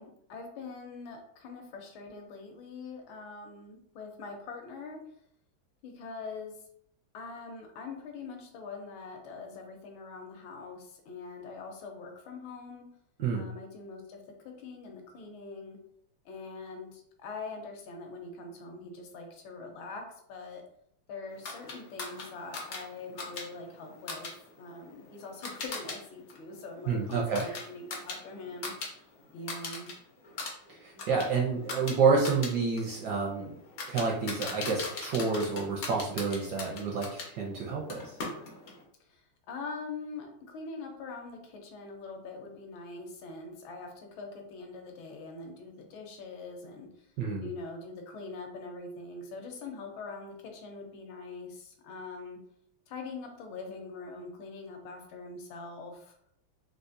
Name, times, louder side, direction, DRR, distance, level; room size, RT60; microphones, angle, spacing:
voice 1, 0.0-5.0 5.8-6.5 7.1-12.8 13.3-14.2 14.6-15.8 16.2-20.0 20.3-20.6 21.1-28.7 29.3-29.9 39.1-46.9 47.4-52.4 52.9-56.1, left 3 dB, 80° left, 2 dB, 1.5 m, -43 dB
sound 1, 21.4-26.0 26.3-28.9 29.2-29.9 30.2-37.3 37.9-38.8, left 3 dB, 60° left, 0.9 m, -40 dB
voice 2, 26.9-27.6 30.7-33.6 33.9-38.2 47.2-47.5, right 4 dB, 75° right, -2 dB, 1.0 m, -29 dB
3.9 x 2.4 x 2.5 m, 0.70 s
omnidirectional pair, 2.2 m